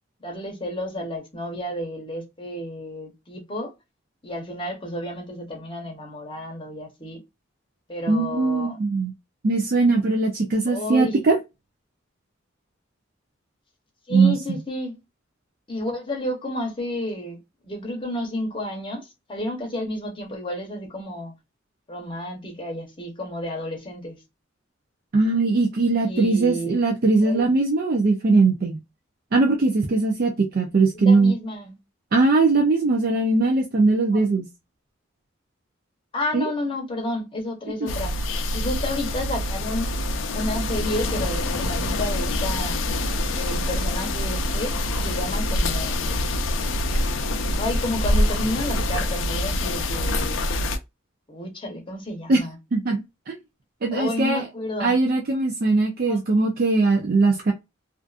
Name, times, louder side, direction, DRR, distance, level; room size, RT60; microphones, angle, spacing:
voice 1, 0.2-3.7 4.2-7.2 7.9-8.8 10.7-11.2 14.1-15.0 15.7-17.4 17.6-21.3 21.9-24.2 26.0-26.8 27.2-27.5 30.9-31.8 34.1-34.3 36.1-38.2 38.5-39.9 40.3-42.8 43.3-46.2 47.5-50.4 51.3-52.6 53.9-55.0 56.1-56.2, left 1 dB, 25° left, 0.8 m, -31 dB
voice 2, 8.1-9.1 9.4-11.4 14.1-14.4 25.1-28.8 29.3-31.3 32.1-34.5 36.3-36.4 52.3-52.4 52.7-53.4 53.8-54.4 54.8-57.5, right 3 dB, 50° right, 0.4 m, -20 dB
sound 1, 37.9-50.8, left 1 dB, 70° left, 0.4 m, -25 dB
2.4 x 2.4 x 2.4 m
head